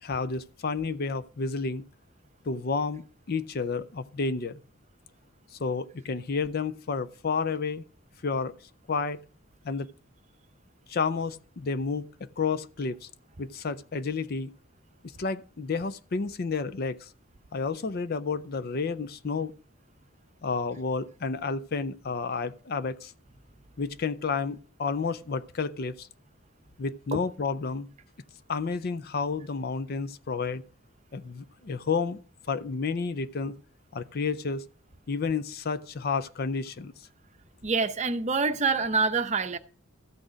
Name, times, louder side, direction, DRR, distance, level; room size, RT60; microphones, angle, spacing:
voice 1, 0.0-1.8 2.5-4.6 5.5-7.8 8.2-8.5 8.9-9.2 9.6-9.9 10.9-13.1 13.4-14.5 15.2-17.1 17.5-19.5 20.4-23.1 23.8-26.1 26.8-27.9 28.5-30.6 31.1-32.2 32.5-33.6 33.9-34.6 35.1-36.9, left 4 dB, 45° left, 0.5 m, -31 dB
voice 2, 37.6-39.6, right 4 dB, 35° right, 0.7 m, -26 dB
14.0 x 6.4 x 5.0 m
head